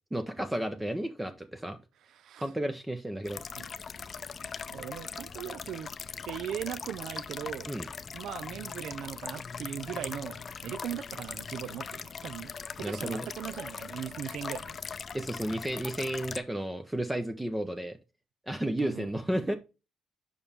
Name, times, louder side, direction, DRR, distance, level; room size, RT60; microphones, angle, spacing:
voice 1, 0.1-1.8 2.4-3.4 7.7-7.9 12.8-13.3 15.1-18.0 18.5-19.5, right 1 dB, 10° right, 0.7 m, -32 dB
voice 2, 2.1-2.5 3.6-3.7 4.7-5.9 6.2-7.7 8.1-14.8 18.8-19.1, right 10 dB, 75° right, 0.3 m, -39 dB
sound 1, 3.2-16.4, left 6 dB, 45° left, 0.5 m, -40 dB
6.9 x 5.5 x 3.4 m
cardioid pair, 90°, 0 cm